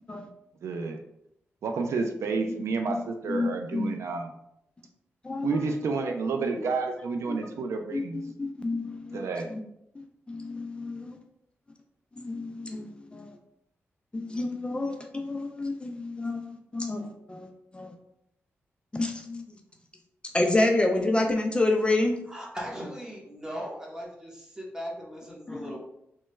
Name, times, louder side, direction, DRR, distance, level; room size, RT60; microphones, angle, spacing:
voice 1, 0.6-1.0 1.6-4.3 5.4-8.2 9.1-9.5, right 4 dB, 80° right, 4 dB, 0.4 m, -30 dB
voice 2, 3.3-3.9 5.2-5.6 7.9-9.2 9.5-9.6 10.3-11.2 12.2-13.3 14.1-17.5 17.7-17.9 18.9-19.4 20.3-22.2 25.5-25.8, left 2 dB, 20° left, 3 dB, 0.4 m, -29 dB
voice 3, 22.3-25.8, equal, 15° right, -3 dB, 1.0 m, -38 dB
3.1 x 2.2 x 3.1 m, 0.78 s
cardioid pair, 80°, 5 cm